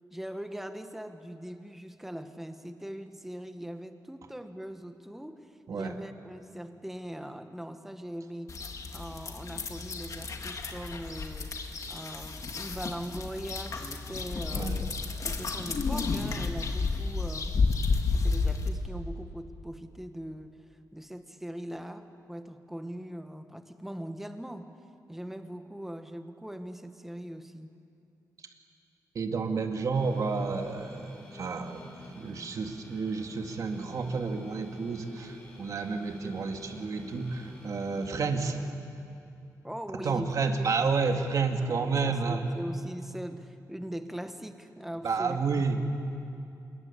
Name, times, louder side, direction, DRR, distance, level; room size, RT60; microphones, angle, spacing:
voice 1, 0.1-8.6 8.9-11.6 11.9-14.9 15.2-17.6 18.1-20.6 20.9-24.7 25.1-27.7 39.6-40.3 40.6-40.7 41.6-45.6, equal, 5° right, 7 dB, 1.4 m, -41 dB
sound 1, 8.5-18.7, left 4 dB, 50° left, 2.1 m, -31 dB
voice 2, 14.5-14.9 29.1-38.6 40.0-42.4 45.0-45.8, right 4 dB, 55° right, 5 dB, 2.1 m, -30 dB
sound 2, 29.9-38.2, left 1 dB, 15° left, 6.0 m, -51 dB
27.0 x 22.0 x 8.4 m, 2.6 s
wide cardioid pair, 120°, 7 cm